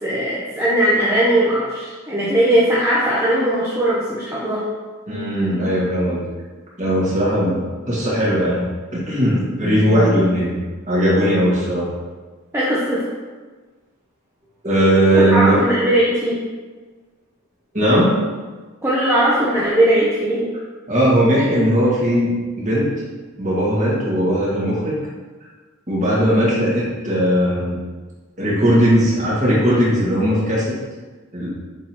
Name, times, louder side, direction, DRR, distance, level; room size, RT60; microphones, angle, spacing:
voice 1, 0.0-4.6 12.5-13.1 15.1-16.4 18.8-20.5, right 1 dB, 15° right, -8 dB, 0.9 m, -19 dB
voice 2, 5.1-6.2 6.8-8.7 8.9-10.6 10.9-11.9 14.6-15.6 17.7-18.1 20.9-22.3 22.6-22.9 23.4-25.0 25.9-27.8 28.4-30.8 31.3-31.5, equal, 35° right, -7 dB, 1.9 m, -18 dB
8.2 x 3.9 x 3.0 m, 1.3 s
head